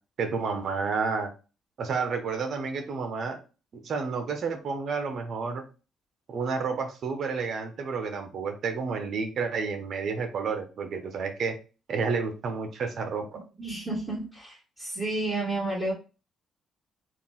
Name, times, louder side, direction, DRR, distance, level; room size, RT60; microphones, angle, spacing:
voice 1, 0.2-1.3 1.8-3.4 3.7-5.6 6.3-11.5 11.9-13.3, right 5 dB, 60° right, 6 dB, 1.0 m, -30 dB
voice 2, 13.6-15.9, right 2 dB, 10° right, -8 dB, 2.1 m, -31 dB
3.9 x 2.7 x 3.7 m, 0.32 s
cardioid pair, 90°, 0 cm